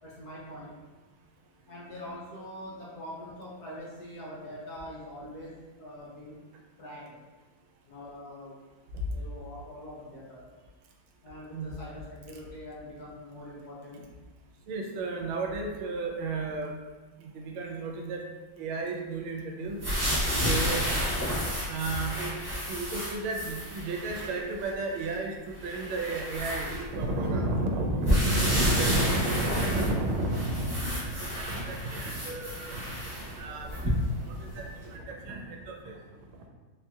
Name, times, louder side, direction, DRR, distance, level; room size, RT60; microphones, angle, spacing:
voice 1, 0.0-0.7 1.7-6.4 6.8-7.2 7.9-8.6 9.1-10.5 11.2-14.0, left 1 dB, 65° left, -7 dB, 1.0 m, -43 dB
voice 2, 14.7-16.7 17.3-18.2 18.6-19.8 20.4-20.8 21.7-22.3 22.7-25.3 25.6-30.8 31.2-32.8 33.4-33.7 34.5-34.6 34.9-36.0, right 2 dB, 80° right, 1 dB, 1.4 m, -31 dB
sound 1, 19.8-24.3 25.0-25.1 25.6-27.2 28.0-34.2 34.8-34.9, equal, 15° right, 0.8 m, -30 dB
4.4 x 2.7 x 2.3 m, 1.3 s
omnidirectional pair, 2.2 m